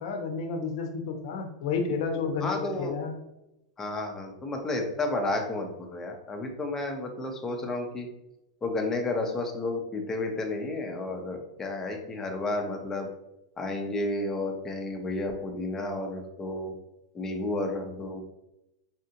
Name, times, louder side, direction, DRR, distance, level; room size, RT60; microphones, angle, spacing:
voice 1, 0.0-3.1, left 5 dB, 60° left, 5 dB, 0.7 m, -31 dB
voice 2, 2.4-2.9 3.8-8.1 8.6-13.1 13.6-16.7 17.1-18.2, left 2 dB, 15° left, 2 dB, 0.6 m, -31 dB
4.1 x 2.5 x 2.8 m, 0.89 s
supercardioid pair, 135°, 3 cm